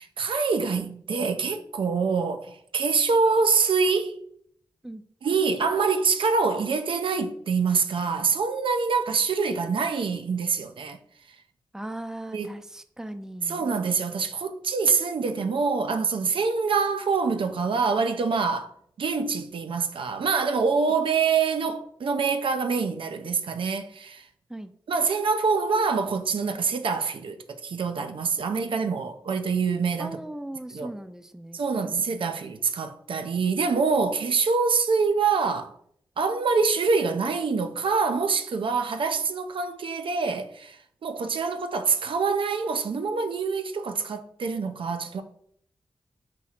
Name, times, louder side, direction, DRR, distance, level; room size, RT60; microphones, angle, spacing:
voice 1, 0.0-4.2 5.2-11.0 12.3-12.6 13.5-24.3 24.9-30.2 30.7-30.9 31.5-35.7 36.2-45.2, right 5 dB, 75° right, 0.4 m, -25 dB
voice 2, 11.7-13.7 24.5-24.7 30.0-31.6 31.8-32.4, right 1 dB, 5° right, 0.4 m, -38 dB
4.2 x 2.4 x 4.2 m
cardioid pair, 45°, 9 cm